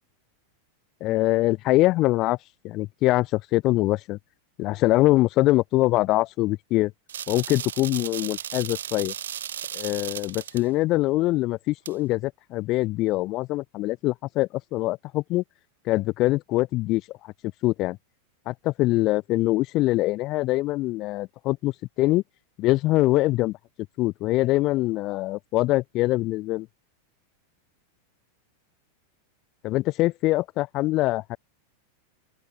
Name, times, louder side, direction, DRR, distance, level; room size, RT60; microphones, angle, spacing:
voice 1, 1.0-2.4 2.6-4.2 4.6-6.9 7.3-9.1 9.7-15.4 15.9-17.3 17.6-18.0 18.5-22.2 22.6-23.6 24.0-26.7 29.6-31.4, left 18 dB, 40° left, 4.2 m, -23 dB
sound 1, 7.1-10.6 11.9-12.0, right 10 dB, 65° right, 3.8 m, -35 dB
open air
figure-of-eight pair, 90°, 0 cm